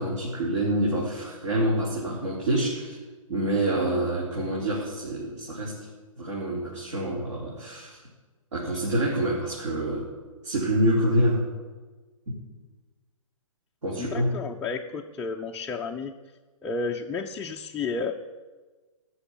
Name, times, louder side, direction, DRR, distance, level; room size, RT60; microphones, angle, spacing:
voice 1, 0.0-3.0 3.3-5.7 6.2-8.0 8.5-10.1 10.4-11.4 12.3-12.4 13.8-14.3, right 1 dB, 60° right, -4 dB, 3.9 m, -26 dB
voice 2, 14.0-16.1 16.6-18.1, left 4 dB, 5° left, 0 dB, 0.4 m, -32 dB
17.0 x 6.3 x 9.8 m, 1.3 s
figure-of-eight pair, 125°, 18 cm